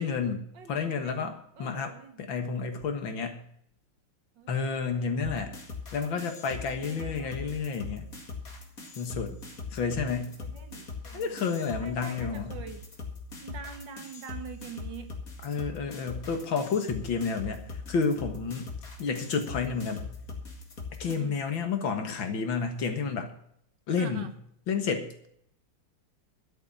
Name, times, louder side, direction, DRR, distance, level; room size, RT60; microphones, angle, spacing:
voice 1, 0.0-3.4 4.5-5.5 5.9-8.1 9.0-9.4 9.7-10.3 11.1-12.5 15.4-18.7 19.0-20.1 21.0-23.3 23.9-24.3 24.7-25.3, left 5 dB, 70° left, 7 dB, 2.3 m, -30 dB
voice 2, 0.5-1.3 1.6-2.7 4.4-5.3 6.5-7.4 9.9-11.5 11.8-12.9 13.4-15.2 21.0-21.4 24.0-24.3, right 7 dB, 65° right, 8 dB, 1.9 m, -45 dB
sound 1, 5.2-21.2, left 4 dB, 45° left, 2.5 m, -41 dB
13.0 x 6.8 x 8.7 m, 0.66 s
omnidirectional pair, 2.2 m